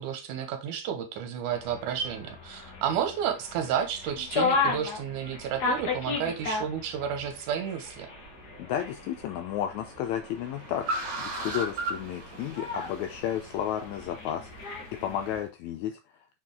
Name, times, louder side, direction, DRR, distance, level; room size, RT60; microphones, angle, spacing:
voice 1, 0.0-8.1, right 8 dB, 80° right, 7 dB, 2.5 m, -31 dB
sound 1, 1.5-15.4, left 4 dB, 45° left, 1.3 m, -35 dB
Car, 8.1-15.4, right 2 dB, 60° right, 2.7 m, -39 dB
voice 2, 8.6-10.9 11.2-16.0, left 10 dB, 80° left, 7 dB, 1.7 m, -32 dB
6.1 x 4.5 x 3.4 m, 0.26 s
omnidirectional pair, 3.7 m